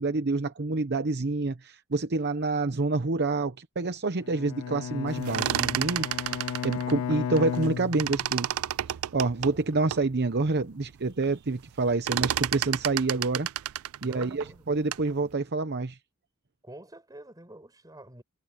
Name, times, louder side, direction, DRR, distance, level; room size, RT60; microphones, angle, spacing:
voice 1, 0.0-8.6 8.9-13.5 14.0-16.0, right 3 dB, 50° right, 0.9 m, -28 dB
Bowed string instrument, 4.2-8.6, left 8 dB, 70° left, 0.3 m, -34 dB
sound 1, 5.1-7.7 7.9-10.1 10.6-10.7 10.9-11.3 11.6-15.1, right 12 dB, 70° right, 0.4 m, -31 dB
voice 2, 14.0-14.9 16.6-18.2, right 1 dB, 15° right, 6.7 m, -48 dB
head